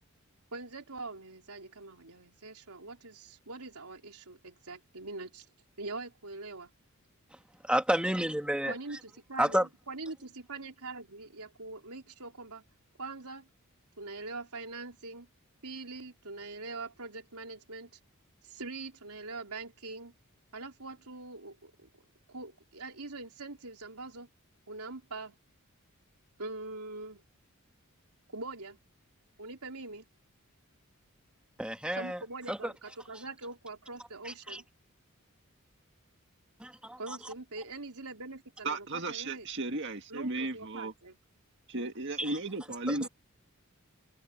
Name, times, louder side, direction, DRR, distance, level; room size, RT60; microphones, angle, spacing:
voice 1, 0.5-5.5 5.8-6.7 8.6-12.6 13.0-13.5 14.0-15.3 15.6-17.9 18.4-20.1 20.5-21.9 22.3-24.3 24.7-25.4 26.4-27.2 28.3-28.8 29.4-30.1 31.9-34.6 37.0-39.5 40.1-41.2, right 3 dB, 85° right, 3.8 m, -43 dB
voice 2, 7.6-8.7 9.4-9.7 31.6-32.2 32.5-32.7 34.2-34.6 36.6-37.2 42.2-42.4 42.9-43.1, right 1 dB, 5° right, 1.5 m, -30 dB
voice 3, 38.6-40.9 41.7-43.1, right 2 dB, 55° right, 2.0 m, -35 dB
head